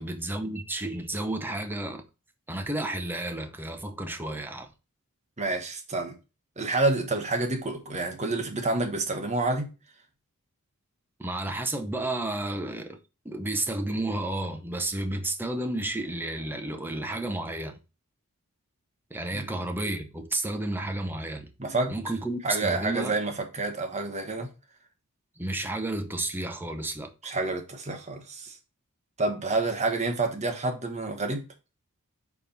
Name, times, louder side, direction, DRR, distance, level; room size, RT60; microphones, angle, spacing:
voice 1, 0.0-2.1 2.5-4.7 11.2-13.0 13.2-17.8 19.1-21.5 21.9-23.1 25.4-27.1, right 1 dB, 10° right, 0.8 m, -31 dB
voice 2, 5.4-6.1 6.6-9.7 19.3-19.4 21.6-21.9 22.4-24.5 27.2-28.5 29.2-31.5, right 2 dB, 30° right, 1.2 m, -28 dB
4.8 x 4.3 x 5.2 m
head